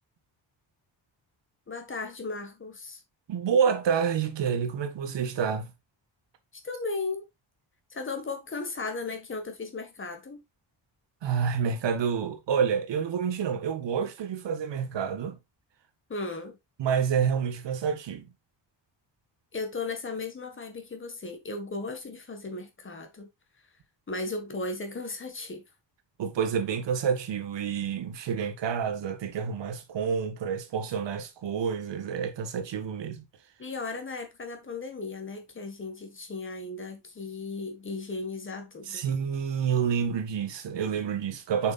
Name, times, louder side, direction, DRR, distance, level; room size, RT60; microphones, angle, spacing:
voice 1, 1.7-3.0 6.5-7.3 7.9-10.4 16.1-16.6 19.5-23.3 24.1-25.6 33.6-39.0, left 3 dB, 25° left, 1.7 m, -36 dB
voice 2, 3.3-5.7 11.2-15.4 16.8-18.3 26.2-33.2 38.9-41.7, right 7 dB, 70° right, 1.6 m, -28 dB
7.6 x 6.0 x 2.5 m
wide cardioid pair, 175°, 45 cm